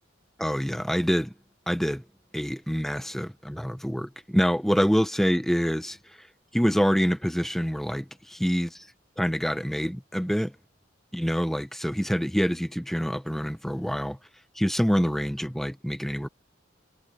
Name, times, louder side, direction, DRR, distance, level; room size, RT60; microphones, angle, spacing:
voice 1, 0.4-1.3 1.7-2.0 2.3-6.0 6.5-8.9 9.2-10.5 11.1-14.2 14.6-16.3, equal, ahead, 1.1 m, -26 dB
head